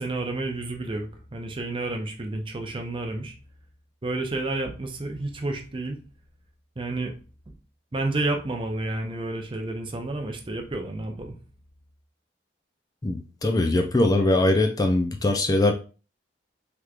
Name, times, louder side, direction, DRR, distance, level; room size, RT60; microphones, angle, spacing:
voice 1, 0.0-3.3 4.0-6.0 6.8-7.1 7.9-11.3, right 2 dB, 30° right, 3 dB, 0.6 m, -30 dB
voice 2, 13.0-15.7, left 2 dB, 20° left, 4 dB, 0.3 m, -22 dB
3.4 x 3.0 x 2.4 m, 0.35 s
head